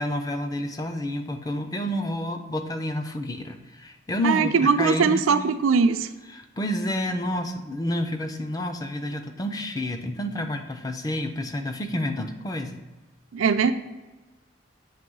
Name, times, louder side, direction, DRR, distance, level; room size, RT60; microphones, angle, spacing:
voice 1, 0.0-5.3 6.3-12.8, left 1 dB, 20° left, 6 dB, 0.4 m, -29 dB
voice 2, 4.2-6.1 13.3-13.7, right 5 dB, 90° right, 9 dB, 0.4 m, -21 dB
7.4 x 3.0 x 5.3 m, 1.2 s
head